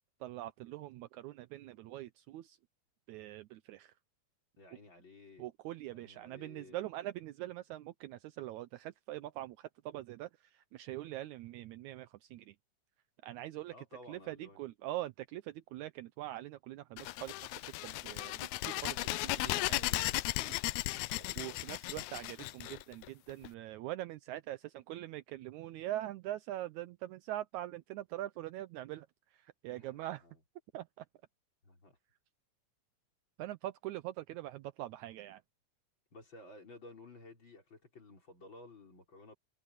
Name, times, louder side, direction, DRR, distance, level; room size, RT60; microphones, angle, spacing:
voice 1, 0.2-2.6 3.1-3.9 5.4-12.6 13.2-13.7 14.1-20.7 21.4-30.3 30.7-31.1 33.4-35.4, right 14 dB, 80° right, 2.0 m, -43 dB
voice 2, 4.6-5.5 5.9-6.9 13.7-14.6 20.8-21.6 29.7-30.4 31.6-32.0 36.1-39.4, left 2 dB, 35° left, 5.7 m, -55 dB
sound 1, 17.0-23.5, left 18 dB, 80° left, 1.9 m, -36 dB
omnidirectional pair, 3.5 m